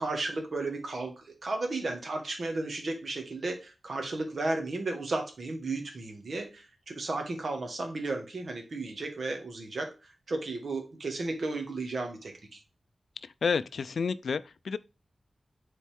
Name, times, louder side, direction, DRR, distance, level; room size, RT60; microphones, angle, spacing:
voice 1, 0.0-9.9 10.3-12.6, right 2 dB, 65° right, 1.8 m, -34 dB
voice 2, 13.2-14.8, left 5 dB, 90° left, 0.4 m, -30 dB
7.3 x 4.2 x 3.6 m
wide cardioid pair, 100°, 0 cm